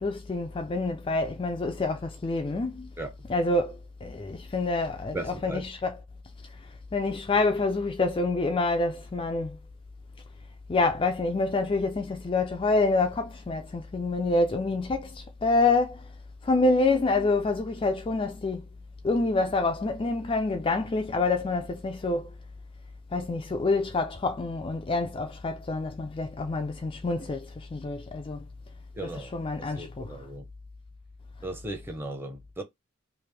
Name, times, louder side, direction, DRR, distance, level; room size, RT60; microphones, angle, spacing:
voice 1, 0.0-2.9 3.3-3.8 4.0-6.0 6.9-9.6 10.7-16.0 16.4-18.6 19.0-22.3 23.1-28.4 29.0-30.2, left 3 dB, 25° left, 0.3 m, -27 dB
voice 2, 5.1-5.7 29.0-29.3 29.7-30.5 31.4-32.6, right 1 dB, 10° right, 0.6 m, -37 dB
3.2 x 2.4 x 3.2 m
head